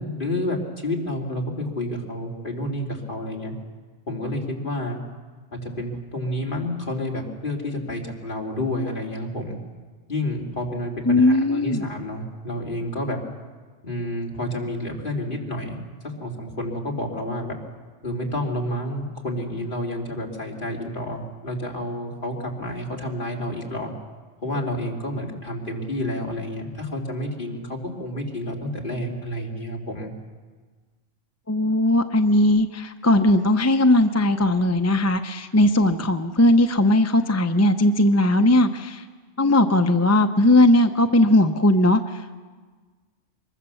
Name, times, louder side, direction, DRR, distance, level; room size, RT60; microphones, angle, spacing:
voice 1, 0.0-3.5 4.1-5.0 5.6-9.6 10.1-13.2 13.8-15.8 16.0-17.5 18.0-23.9 24.4-30.1, left 1 dB, 40° left, -1 dB, 3.3 m, -29 dB
voice 2, 11.1-11.8 31.5-39.0 39.4-42.4, left 1 dB, 20° left, 7 dB, 0.5 m, -18 dB
24.5 x 22.5 x 7.0 m, 1.4 s
omnidirectional pair, 1.3 m